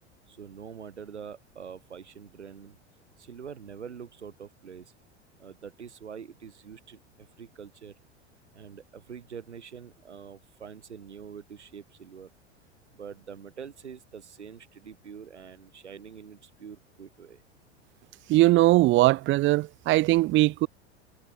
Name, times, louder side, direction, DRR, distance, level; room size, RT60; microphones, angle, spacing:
voice 1, 0.3-2.8 3.2-4.9 5.4-7.9 8.5-12.3 12.9-17.4, right 7 dB, 75° right, 7.4 m, -45 dB
voice 2, 18.3-20.7, right 18 dB, 35° right, 0.9 m, -20 dB
figure-of-eight pair, 85°, 35 cm